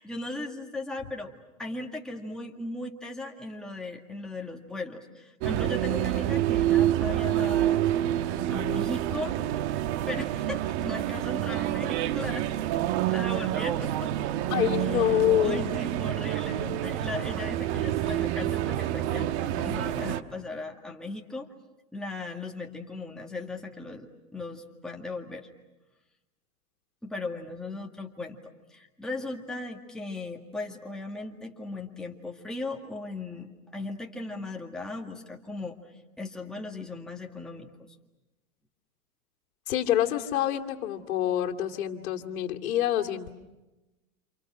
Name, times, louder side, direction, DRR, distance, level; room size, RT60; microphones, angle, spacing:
voice 1, 0.0-1.3 1.6-7.8 8.5-9.4 10.0-12.5 13.0-15.2 15.4-21.5 21.9-25.5 27.0-35.8 36.2-37.9, left 2 dB, ahead, 0 dB, 2.0 m, -37 dB
sound 1, 5.4-20.2, right 13 dB, 50° right, 1.4 m, -28 dB
voice 2, 14.5-15.7 39.7-43.3, left 12 dB, 70° left, 2 dB, 2.7 m, -26 dB
30.0 x 28.0 x 6.2 m, 1.0 s
hypercardioid pair, 135°, 43 cm